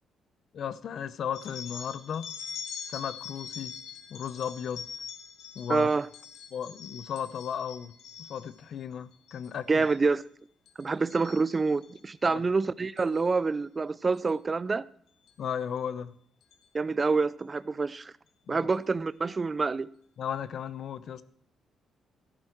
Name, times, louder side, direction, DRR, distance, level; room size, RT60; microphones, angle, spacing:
voice 1, 0.5-2.3 2.9-3.7 4.1-4.9 5.6-5.9 6.5-7.9 8.2-9.9 12.2-12.4 15.4-16.1 18.5-18.7 20.2-21.2, left 8 dB, 65° left, 0.7 m, -35 dB
sound 1, 1.3-8.6 9.1-9.5 9.8-10.3 10.7-12.0 13.0-13.2 14.1-14.3 15.3-15.4 15.8-15.9 16.4-16.6, left 7 dB, 80° left, 1.6 m, -44 dB
voice 2, 5.7-6.1 9.7-10.2 10.8-14.8 16.7-18.1 18.5-19.9, right 4 dB, 30° right, 0.4 m, -27 dB
13.0 x 11.0 x 4.5 m
cardioid pair, 90°, 0 cm